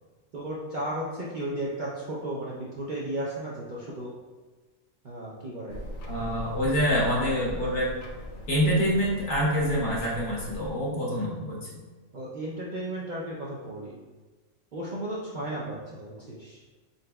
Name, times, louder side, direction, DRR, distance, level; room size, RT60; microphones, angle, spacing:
voice 1, 0.3-4.1 5.0-5.8 12.1-14.0 14.7-16.6, right 1 dB, 55° right, -5 dB, 0.5 m, -34 dB
sound 1, 5.7-10.7, left 1 dB, 90° left, 1.0 m, -39 dB
voice 2, 6.1-7.9 8.5-11.7, equal, 60° left, -4 dB, 1.3 m, -26 dB
4.1 x 3.8 x 2.2 m, 1.3 s
omnidirectional pair, 1.3 m